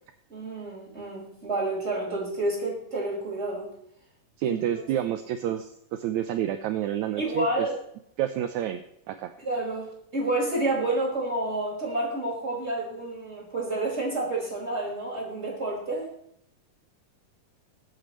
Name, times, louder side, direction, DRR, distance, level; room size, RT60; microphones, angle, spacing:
voice 1, 0.3-3.7 4.4-4.6 7.2-7.8 9.4-16.1, right 2 dB, 20° right, -4 dB, 5.8 m, -29 dB
voice 2, 4.4-7.5 8.2-9.3, right 11 dB, 75° right, 8 dB, 2.0 m, -29 dB
22.0 x 9.5 x 3.2 m, 0.71 s
omnidirectional pair, 3.7 m